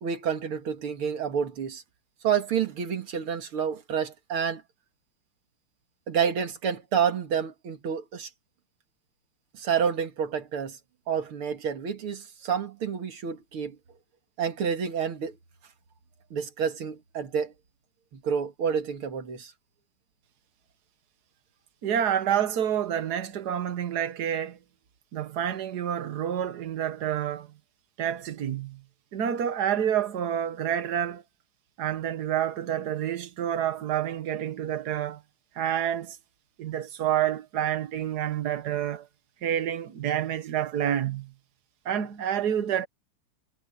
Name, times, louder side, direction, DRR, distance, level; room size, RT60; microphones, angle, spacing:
voice 1, 0.0-1.8 2.2-4.6 6.1-8.3 9.5-10.8 11.1-13.8 14.4-15.3 16.3-17.5 18.1-19.5, right 7 dB, 75° right, 2.8 m, -29 dB
voice 2, 21.8-24.6 25.1-27.5 28.0-28.8 29.1-31.2 31.8-35.2 35.5-36.2 36.6-39.1 39.4-41.3 41.8-42.9, right 10 dB, 50° right, 1.6 m, -28 dB
omnidirectional pair, 2.4 m